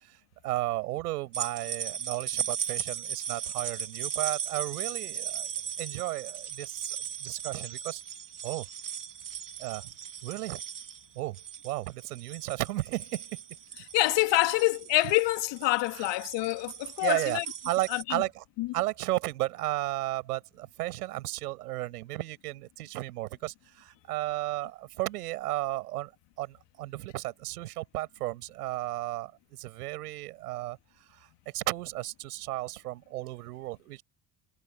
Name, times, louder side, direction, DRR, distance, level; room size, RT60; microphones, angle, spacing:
voice 1, 0.4-5.5 5.8-8.0 8.4-8.7 9.6-9.9 10.2-10.6 11.1-13.4 14.4-14.5 15.9-16.1 17.0-17.4 17.6-18.4 18.7-26.1 26.4-30.8 31.1-34.0, right 17 dB, 80° right, 6.6 m, -34 dB
sound 1, 1.3-18.0, right 8 dB, 45° right, 3.3 m, -37 dB
voice 2, 13.9-17.5 17.9-18.2 18.6-18.7, left 20 dB, 65° left, 2.4 m, -26 dB
hypercardioid pair, 55°, 45 cm